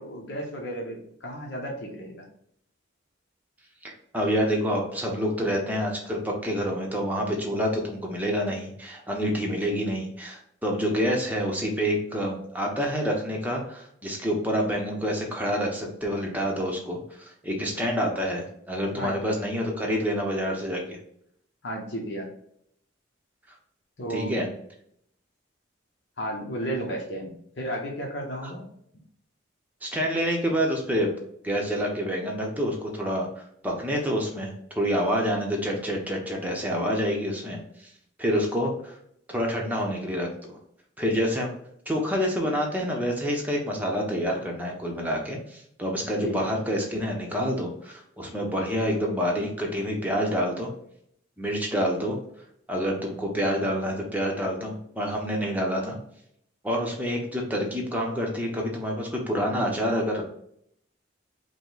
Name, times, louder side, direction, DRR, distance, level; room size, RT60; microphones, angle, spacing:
voice 1, 0.0-2.2 19.0-19.2 21.6-22.3 24.0-24.4 26.2-28.6 46.2-46.5, right 1 dB, 60° left, -1 dB, 0.9 m, -33 dB
voice 2, 3.8-21.0 24.1-24.5 29.8-31.1 31.4-33.3 33.6-37.9 38.2-39.0 39.3-40.6 41.0-41.5 41.9-50.7 51.4-52.2 52.7-56.0 56.6-60.2, equal, 10° right, -1 dB, 0.8 m, -27 dB
5.1 x 2.2 x 3.9 m, 0.71 s
head